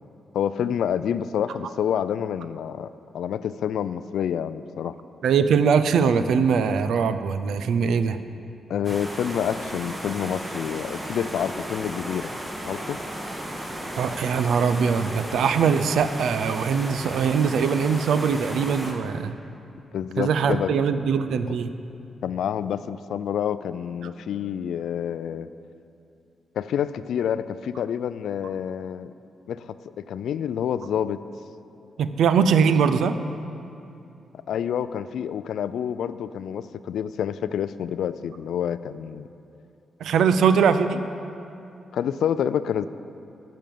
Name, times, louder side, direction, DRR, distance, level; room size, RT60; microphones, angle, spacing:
voice 1, 0.3-5.0 8.7-12.3 12.7-13.0 19.9-20.7 22.2-25.5 26.6-29.1 29.5-31.2 34.5-39.3 41.9-42.9, left 9 dB, 85° left, 14 dB, 0.3 m, -28 dB
voice 2, 5.2-8.2 13.9-19.3 20.2-21.7 32.0-33.2 40.0-41.0, right 6 dB, 85° right, 11 dB, 0.4 m, -21 dB
sound 1, 8.8-18.9, right 1 dB, 20° right, 1.4 m, -34 dB
12.0 x 5.2 x 7.5 m, 2.7 s
cardioid pair, 95°, 0 cm